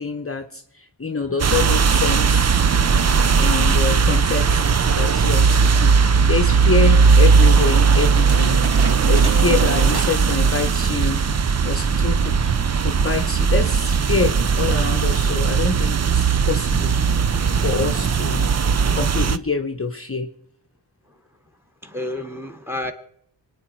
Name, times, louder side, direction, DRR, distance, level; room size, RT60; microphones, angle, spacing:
voice 1, 0.0-2.6 3.4-4.6 5.0-8.6 9.0-11.2 11.6-12.5 12.8-17.0 17.5-18.5 18.9-20.3, left 4 dB, 30° left, 0.9 m, -26 dB
sound 1, 1.4-19.4, right 5 dB, 40° right, 0.5 m, -18 dB
sound 2, 4.1-18.2, right 1 dB, 85° right, 1.9 m, -39 dB
sound 3, 8.2-10.3 10.5-10.9 11.4-11.5 12.2-12.6, right 3 dB, 60° right, 2.1 m, -34 dB
voice 2, 21.8-22.9, left 1 dB, 5° right, 1.7 m, -32 dB
26.5 x 9.6 x 4.6 m
wide cardioid pair, 110°, 43 cm